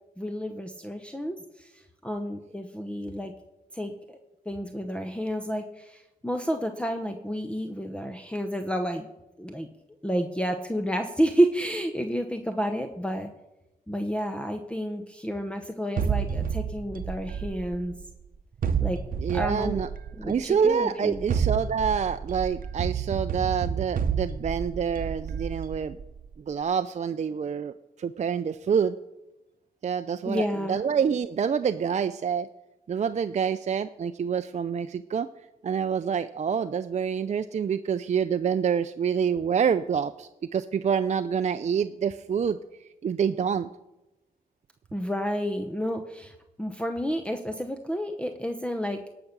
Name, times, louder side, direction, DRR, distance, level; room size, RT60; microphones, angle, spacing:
voice 1, 0.2-1.7 2.0-3.3 3.7-4.2 4.5-9.1 9.4-9.7 10.0-13.3 13.9-17.9 18.8-19.0 19.3-19.8 20.2-21.2 30.2-30.8 44.9-49.1, equal, 5° left, 6 dB, 0.9 m, -30 dB
sound 1, 16.0-18.1 18.6-20.4 21.1-26.2, right 7 dB, 65° right, 0.8 m, -30 dB
voice 2, 19.2-19.9 20.2-26.0 26.5-27.7 28.0-29.0 29.8-32.5 32.9-35.3 35.6-42.6 43.0-43.7, right 7 dB, 50° right, 10 dB, 0.4 m, -27 dB
17.5 x 5.9 x 6.7 m, 0.98 s
cardioid pair, 80°, 15 cm